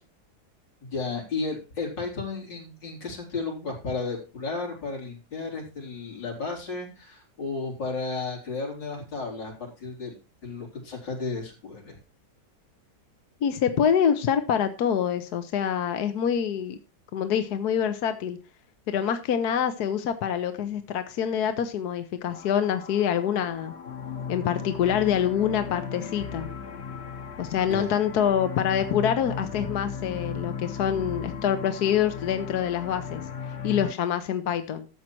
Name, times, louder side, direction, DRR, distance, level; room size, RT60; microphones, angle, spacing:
voice 1, 0.8-10.1 10.4-12.0 27.7-27.9, left 4 dB, 90° left, -1 dB, 4.9 m, -33 dB
voice 2, 13.4-16.8 17.1-18.4 18.9-23.7 24.3-26.5 27.4-33.2 33.6-34.9, left 8 dB, 65° left, 9 dB, 1.4 m, -26 dB
sound 1, 22.3-33.9, left 6 dB, 40° left, 1.3 m, -36 dB
13.0 x 7.4 x 4.5 m, 0.29 s
omnidirectional pair, 1.9 m